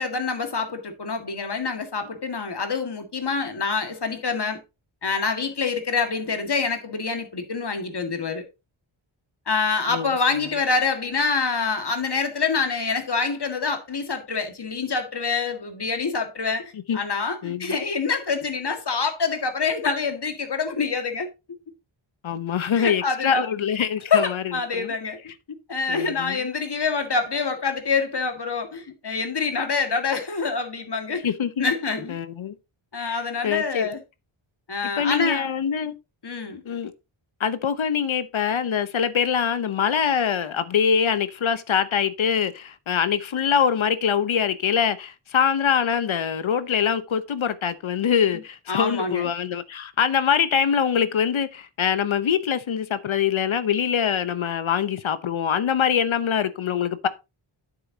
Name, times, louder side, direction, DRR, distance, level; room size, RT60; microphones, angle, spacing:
voice 1, 0.0-4.6 5.0-8.4 9.5-21.3 22.8-23.5 24.1-25.2 25.7-31.2 31.6-32.2 32.9-34.0 34.7-35.5 36.2-36.6 48.7-49.3, left 4 dB, 55° left, 2.0 m, -26 dB
voice 2, 17.4-17.7 22.2-24.9 25.9-26.5 31.2-31.6 32.1-32.5 33.0-33.9 35.0-36.0 36.6-36.9 37.4-57.1, left 7 dB, 70° left, 0.9 m, -24 dB
9.3 x 7.8 x 2.8 m
wide cardioid pair, 85°, 49 cm